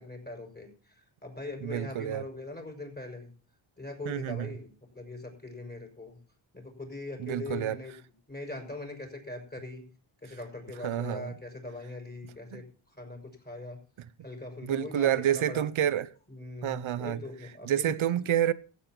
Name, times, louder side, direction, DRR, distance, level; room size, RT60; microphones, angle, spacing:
voice 1, 0.0-3.3 3.8-6.2 6.5-7.9 8.3-9.8 10.2-12.6 12.9-13.8 14.2-15.7 16.3-17.9, left 2 dB, 20° left, 6.0 m, -41 dB
voice 2, 1.6-2.2 4.1-4.5 7.2-7.8 10.8-11.3 12.5-12.6 14.6-16.1 16.6-17.2 17.6-18.5, right 11 dB, 85° right, 0.8 m, -28 dB
15.5 x 8.5 x 5.9 m
wide cardioid pair, 85°, 47 cm